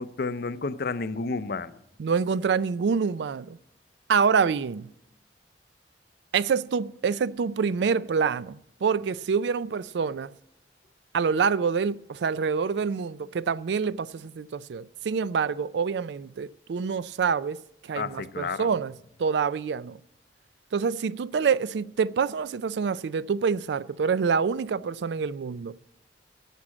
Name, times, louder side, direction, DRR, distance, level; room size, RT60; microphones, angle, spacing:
voice 1, 0.0-1.7 18.0-18.7, left 4 dB, 60° left, 0.6 m, -31 dB
voice 2, 2.0-3.6 4.1-4.9 6.3-10.3 11.1-20.0 20.7-25.7, right 6 dB, 70° right, 0.4 m, -26 dB
11.0 x 7.4 x 8.5 m
head